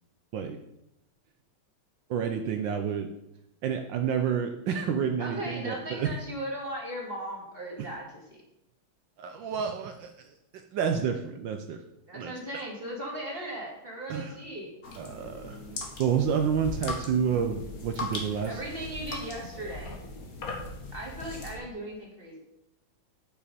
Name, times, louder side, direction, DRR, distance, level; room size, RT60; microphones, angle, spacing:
voice 1, 2.1-3.1 3.6-6.2 7.8-7.9 9.2-10.1 10.5-11.8 12.1-12.3 14.1-14.4 15.0-15.6 16.0-18.6, right 7 dB, 70° right, 6 dB, 1.3 m, -29 dB
voice 2, 5.2-8.4 12.0-14.7 18.5-20.0 20.9-22.4, right 1 dB, 30° right, -2 dB, 2.3 m, -37 dB
sound 1, 14.8-21.6, left 2 dB, 45° left, 1.8 m, -39 dB
8.9 x 7.0 x 5.2 m, 0.87 s
omnidirectional pair, 2.2 m